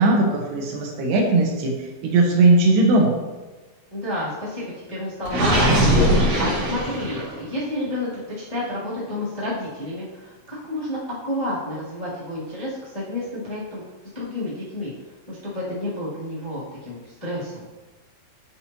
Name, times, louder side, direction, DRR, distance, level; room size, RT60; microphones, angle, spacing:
voice 1, 0.0-1.7 2.0-3.1, right 2 dB, 75° right, -1 dB, 3.1 m, -18 dB
voice 2, 3.9-13.8 14.1-14.9 15.3-17.6, left 1 dB, 15° left, -11 dB, 1.4 m, -30 dB
Gurgling, 5.3-7.4, equal, 45° right, 2.9 m, -20 dB
8.4 x 6.6 x 2.9 m, 1.2 s
omnidirectional pair, 4.9 m